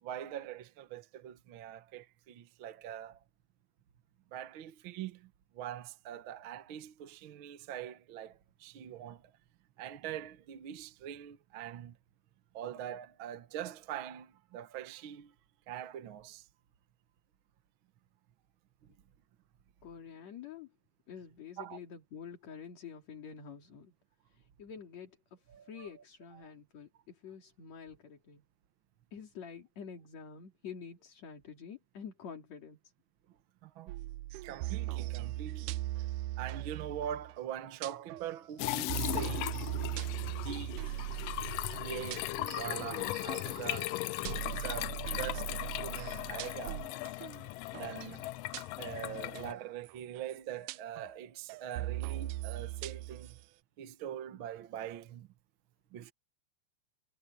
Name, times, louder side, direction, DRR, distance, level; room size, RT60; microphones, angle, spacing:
voice 1, 0.0-3.2 4.3-9.3 9.8-12.0 12.5-15.3 15.7-16.5 21.6-21.8 25.5-25.9 26.3-26.5 33.6-34.0 34.4-35.8 36.4-39.6 40.2-40.8 41.7-44.0 44.4-46.9 47.7-48.3 48.8-53.4 53.8-55.3 55.9-56.1, right 10 dB, 60° right, 1.4 m, -43 dB
voice 2, 19.8-20.7 21.1-23.9 24.3-28.4 29.1-32.8, left 7 dB, 60° left, 3.8 m, -48 dB
sound 1, 33.9-37.4 37.8-38.3 38.6-43.9 44.3-46.9 47.2-47.5 47.7-48.1 48.5-48.8 49.4-49.5 49.9-50.0 50.2-50.4 50.7-51.2 51.5-53.4, right 16 dB, 90° right, 2.1 m, -39 dB
sound 2, 38.6-49.5, left 16 dB, 90° left, 1.4 m, -38 dB
omnidirectional pair, 3.5 m